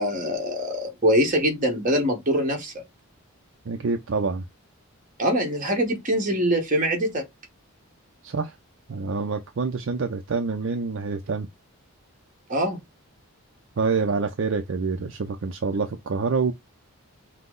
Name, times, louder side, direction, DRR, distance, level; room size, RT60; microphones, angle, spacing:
voice 1, 0.0-2.8 5.2-7.2 12.5-12.8, equal, 35° right, 1.3 m, -23 dB
voice 2, 3.7-4.5 8.2-8.5 8.9-11.5 13.8-16.5, right 4 dB, 55° right, 0.5 m, -26 dB
5.7 x 2.0 x 3.7 m
head